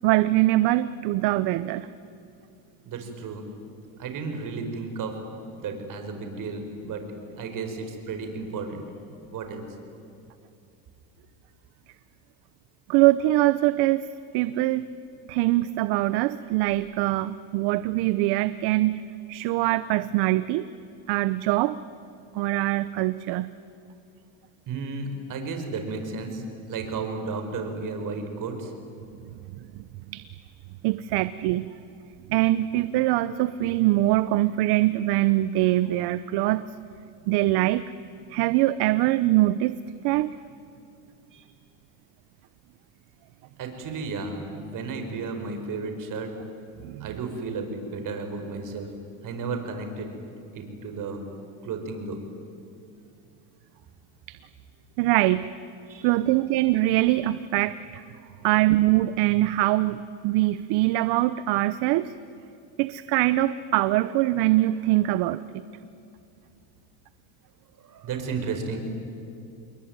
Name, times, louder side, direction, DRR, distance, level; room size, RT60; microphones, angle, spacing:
voice 1, 0.0-1.9 12.9-14.1 14.3-14.9 15.3-20.7 21.1-21.8 22.3-23.5 30.1-30.2 30.8-31.7 32.3-36.6 37.3-37.8 38.3-39.8 40.0-40.3 46.8-47.1 54.3-54.4 55.0-55.5 56.0-58.0 58.4-62.1 62.8-65.6, right 16 dB, 70° right, 15 dB, 0.9 m, -23 dB
voice 2, 2.9-3.5 4.0-5.2 5.5-7.1 7.3-8.8 9.3-9.6 24.7-28.7 41.3-41.4 43.6-46.4 47.0-48.9 49.2-50.1 50.5-51.3 51.6-52.2 55.9-56.1 67.8-68.8, right 4 dB, 50° right, 6 dB, 5.2 m, -33 dB
28.0 x 22.0 x 9.6 m, 2.7 s
cardioid pair, 120°, 41 cm